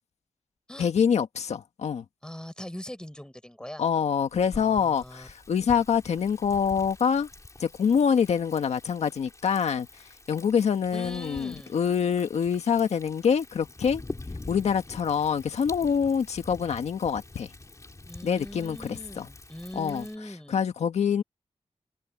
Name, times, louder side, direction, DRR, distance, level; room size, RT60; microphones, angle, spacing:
voice 1, 0.8-2.0 3.8-7.3 7.6-9.9 10.3-14.0 14.5-17.5 18.2-19.3 19.7-20.0 20.5-21.2, left 7 dB, 85° left, 1.7 m, -25 dB
voice 2, 2.2-3.8 4.5-5.3 10.9-11.8 18.0-20.7, left 1 dB, 5° left, 5.4 m, -41 dB
Thunder, 4.3-20.2, left 2 dB, 30° left, 3.4 m, -45 dB
cardioid pair, 70°, 11 cm